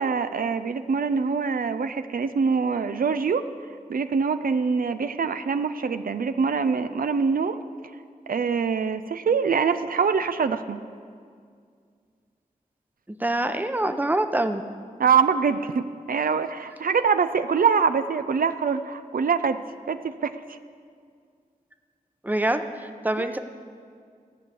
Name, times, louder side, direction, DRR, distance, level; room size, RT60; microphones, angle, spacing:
voice 1, 0.0-3.5 3.9-7.6 8.3-10.8 15.0-19.6 19.9-20.6 23.2-23.3, right 5 dB, 80° right, 10 dB, 0.5 m, -24 dB
voice 2, 13.1-14.6 22.2-23.4, right 1 dB, 10° right, 8 dB, 0.7 m, -25 dB
14.5 x 6.3 x 8.5 m, 2.2 s
wide cardioid pair, 80°, 15 cm